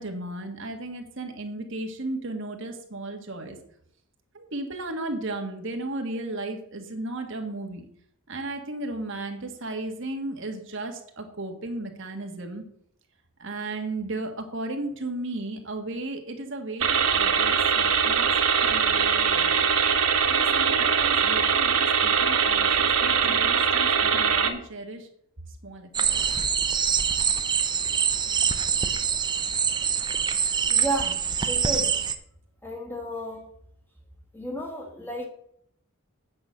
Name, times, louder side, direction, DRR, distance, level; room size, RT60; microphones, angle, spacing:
voice 1, 0.0-3.6 4.3-7.8 8.3-12.6 13.4-18.3 18.7-19.7 20.3-25.1 25.6-26.2, right 2 dB, 55° right, 4 dB, 1.6 m, -35 dB
sound 1, 16.8-24.5, right 6 dB, 75° right, 1.3 m, -22 dB
sound 2, 25.9-32.2, right 7 dB, 20° right, 0.6 m, -25 dB
voice 2, 30.7-31.2 31.5-32.0 32.6-33.5 34.3-35.3, right 1 dB, 10° left, 1 dB, 1.8 m, -32 dB
9.0 x 6.1 x 7.5 m, 0.68 s
head